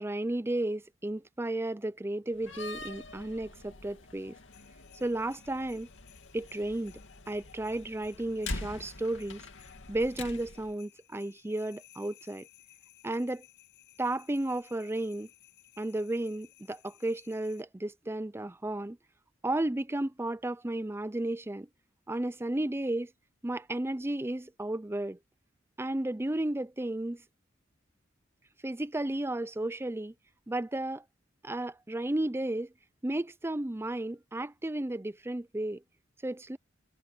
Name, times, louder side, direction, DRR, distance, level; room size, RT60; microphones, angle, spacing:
voice 1, 0.0-4.4 4.9-5.9 6.3-7.0 7.3-9.4 9.9-12.5 13.0-13.4 14.0-15.3 15.8-19.0 19.4-21.7 22.1-23.1 23.4-25.2 25.8-27.2 28.6-30.1 30.5-31.0 31.4-32.7 33.0-35.8 36.2-36.6, right 1 dB, 15° right, 0.5 m, -33 dB
Slam, 2.3-10.7, left 2 dB, 80° left, 2.2 m, -44 dB
sound 1, 4.5-17.6, left 14 dB, 60° left, 8.0 m, -60 dB
head